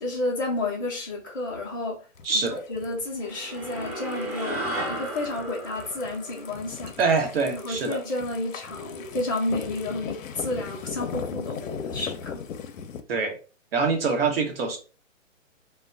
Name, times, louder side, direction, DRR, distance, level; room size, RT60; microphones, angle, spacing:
voice 1, 0.0-2.0 2.3-4.6 4.9-6.9 7.5-12.4, left 2 dB, 15° left, 0.5 m, -31 dB
sound 1, 2.2-13.0, left 7 dB, 90° left, 0.5 m, -39 dB
voice 2, 2.2-2.6 7.0-8.0 13.1-13.4 13.7-14.8, right 4 dB, 50° right, 0.8 m, -24 dB
sound 2, 3.2-7.9, right 1 dB, 25° right, 1.0 m, -35 dB
sound 3, 7.4-7.9 8.7-9.2 9.4-9.9 10.6-11.1 11.6-12.1, left 1 dB, 5° right, 0.8 m, -43 dB
2.2 x 2.1 x 3.7 m
hypercardioid pair, 155°, 39 cm